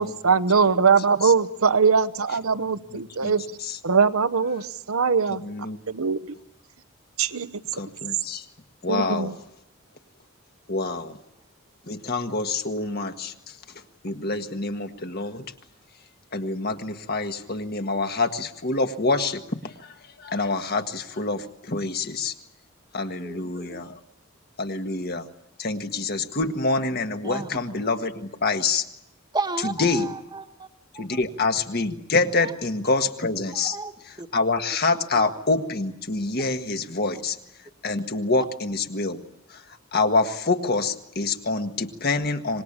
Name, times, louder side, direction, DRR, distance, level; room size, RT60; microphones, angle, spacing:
voice 1, 0.0-3.4 3.8-5.4 5.9-6.2 7.2-7.5 8.9-9.3, right 5 dB, 85° right, 1.0 m, -21 dB
voice 2, 2.9-3.3 3.6-3.8 5.4-5.8 7.7-8.4 8.8-9.3 10.7-11.2 11.9-13.6 14.0-15.4 16.3-22.3 22.9-24.0 24.6-25.3 25.6-28.9 29.6-30.1 30.9-33.8 34.3-37.4 37.8-39.2 39.5-39.6 39.9-42.6, left 3 dB, 45° left, 1.7 m, -26 dB
voice 3, 23.2-23.8 27.2-27.6 29.3-30.7 30.9-31.2 32.4-32.5 33.5-34.3 34.9-35.3 37.1-37.2 38.3-38.4, right 3 dB, 20° right, 1.3 m, -34 dB
25.5 x 20.0 x 8.8 m
head